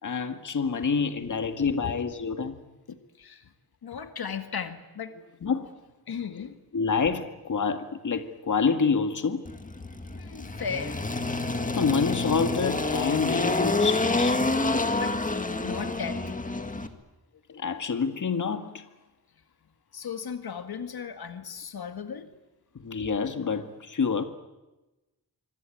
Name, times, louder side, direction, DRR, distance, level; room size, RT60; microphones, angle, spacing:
voice 1, 0.0-2.6 5.4-5.8 6.7-9.5 11.7-14.4 17.5-18.8 22.7-24.2, left 5 dB, 55° left, 1.9 m, -27 dB
voice 2, 2.9-3.5 3.8-5.1 6.1-6.6 10.1-11.0 15.0-15.2 15.6-16.2 19.9-22.3, left 6 dB, 75° left, 1.9 m, -36 dB
Engine, 9.4-16.9, left 2 dB, 20° left, 1.9 m, -28 dB
25.5 x 25.5 x 9.2 m
wide cardioid pair, 150°, 37 cm